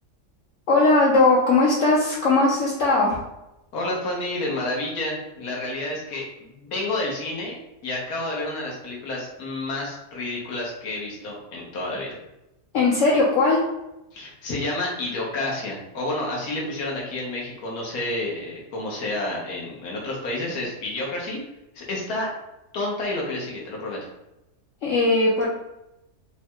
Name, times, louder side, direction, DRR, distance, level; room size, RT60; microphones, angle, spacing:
voice 1, 0.7-3.2 12.7-13.6 24.8-25.5, left 2 dB, 65° left, -5 dB, 1.0 m, -19 dB
voice 2, 3.7-6.2 6.6-12.2 14.1-21.4 21.7-22.3 22.7-24.0, left 2 dB, 80° left, -3 dB, 1.4 m, -30 dB
3.4 x 2.2 x 4.3 m, 0.92 s
omnidirectional pair, 1.5 m